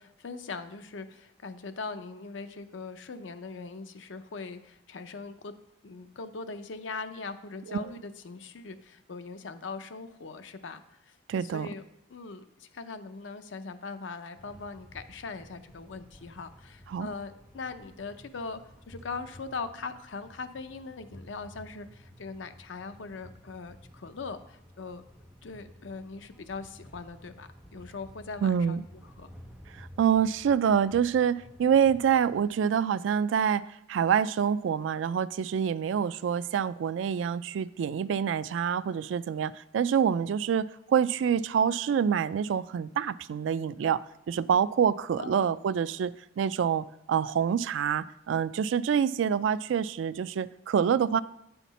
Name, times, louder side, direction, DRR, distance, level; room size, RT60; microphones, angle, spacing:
voice 1, 0.0-5.6 5.8-11.1 11.4-11.8 12.1-18.6 18.9-25.0 25.4-28.8 29.2-29.3 45.2-45.5, left 4 dB, 80° left, 9 dB, 0.6 m, -40 dB
voice 2, 11.3-11.7 16.9-17.1 28.4-28.8 29.8-44.0 44.3-51.2, right 8 dB, 80° right, 16 dB, 0.3 m, -26 dB
sound 1, 14.4-32.4, equal, 5° right, 0.8 m, -53 dB
9.0 x 5.8 x 4.1 m, 0.81 s
head